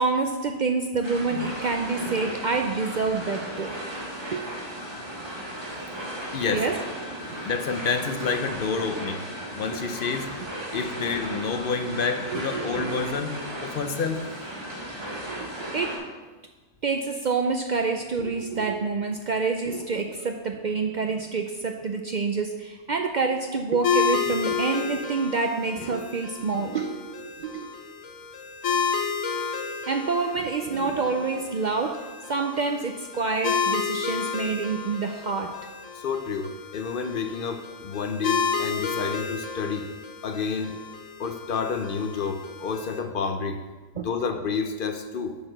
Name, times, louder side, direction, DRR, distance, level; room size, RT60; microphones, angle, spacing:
voice 1, 0.0-3.8 4.3-4.5 6.5-6.7 9.7-9.8 11.0-11.1 12.3-13.0 15.3-15.9 16.8-27.7 29.9-32.0 32.3-35.6 44.0-44.3, right 4 dB, 65° right, 4 dB, 0.4 m, -27 dB
sound 1, 1.0-16.0, equal, 20° right, 2.1 m, -36 dB
voice 2, 6.3-6.7 7.5-9.3 9.6-10.3 10.7-14.2 35.9-39.9 40.2-40.8 41.2-43.6 44.0-45.4, left 5 dB, 55° left, 7 dB, 0.7 m, -29 dB
sound 2, 23.8-43.0, left 5 dB, 80° left, 1.2 m, -31 dB
7.8 x 4.6 x 6.5 m, 1.3 s
omnidirectional pair, 1.3 m